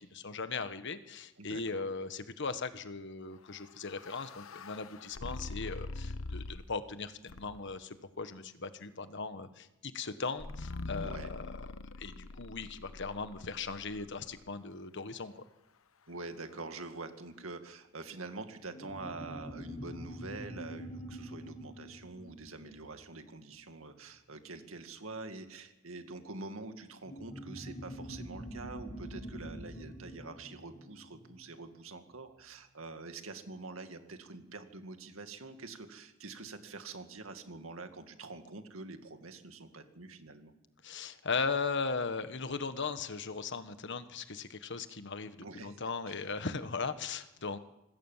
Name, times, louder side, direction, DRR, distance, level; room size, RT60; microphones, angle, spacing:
voice 1, 0.0-11.6 12.0-15.4 40.8-47.6, left 4 dB, 60° left, 10 dB, 1.4 m, -38 dB
voice 2, 1.4-1.8 11.0-11.3 16.1-40.5 45.4-45.8 46.1-46.2, right 3 dB, 80° right, 7 dB, 2.2 m, -46 dB
sound 1, 3.5-6.8 7.3-7.8 10.4-14.5, left 2 dB, 85° left, 1.0 m, -44 dB
sound 2, 18.7-23.7 27.0-31.9, right 1 dB, 35° left, 3.9 m, -45 dB
26.0 x 20.0 x 7.5 m, 0.93 s
head